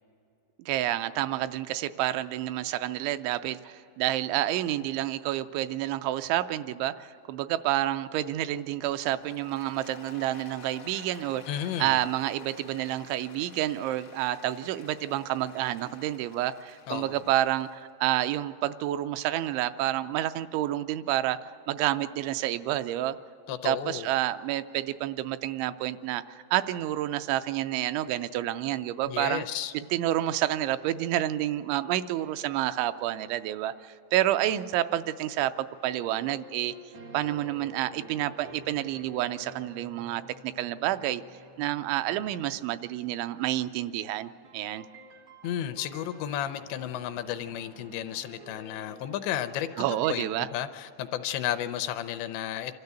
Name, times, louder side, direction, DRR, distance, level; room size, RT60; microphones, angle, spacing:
voice 1, 0.7-11.4 11.8-21.4 21.7-23.2 23.5-26.2 26.5-29.4 29.9-36.7 37.1-41.2 41.6-44.9 49.8-50.5, right 14 dB, 85° right, 11 dB, 2.9 m, -29 dB
Applause, 9.1-17.8, left 4 dB, 65° left, 1.1 m, -51 dB
voice 2, 11.5-12.0 16.9-17.2 23.5-24.1 29.1-29.7 45.4-52.7, left 11 dB, 80° left, 9 dB, 2.7 m, -33 dB
sound 1, 35.8-43.6 44.4-50.5, right 1 dB, 70° right, 1.3 m, -50 dB
25.5 x 13.5 x 8.2 m, 2.8 s
omnidirectional pair, 5.3 m